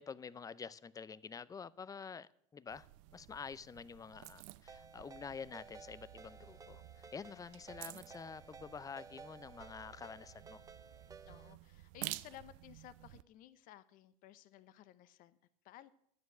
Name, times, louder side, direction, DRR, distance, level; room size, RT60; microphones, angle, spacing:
voice 1, 0.0-2.9 3.1-10.6, left 6 dB, 20° left, 19 dB, 0.6 m, -48 dB
sound 1, 2.7-13.2, right 19 dB, 65° right, 0.5 m, -52 dB
Ringtone, 4.7-11.5, right 4 dB, 20° right, 0.9 m, -56 dB
voice 2, 11.3-15.4 15.6-15.9, left 13 dB, 55° left, 14 dB, 0.9 m, -56 dB
12.5 x 9.5 x 6.2 m, 0.70 s
hypercardioid pair, 80°, 17 cm